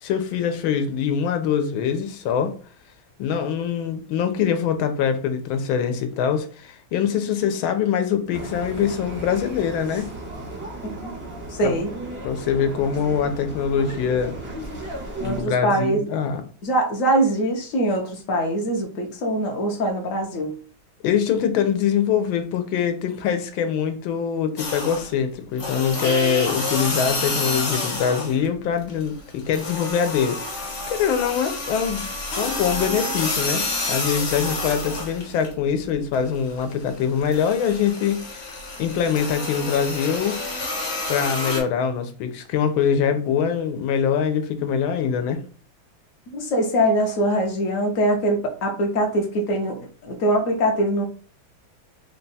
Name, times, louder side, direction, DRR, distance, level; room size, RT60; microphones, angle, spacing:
voice 1, 0.0-2.6 3.2-10.1 11.6-11.7 12.2-14.4 15.2-16.4 21.0-32.1 32.4-38.5 38.8-40.4 41.1-45.4, left 7 dB, 85° left, 1.4 m, -23 dB
sound 1, 8.3-15.4, right 2 dB, 25° right, 0.6 m, -35 dB
voice 2, 11.5-11.9 15.2-16.1 16.6-20.6 46.3-51.0, right 1 dB, 60° left, 0.9 m, -23 dB
sound 2, 24.6-25.2 25.6-28.5 28.8-35.5 35.9-41.6, left 2 dB, 40° left, 1.2 m, -29 dB
3.6 x 2.3 x 4.0 m
omnidirectional pair, 2.2 m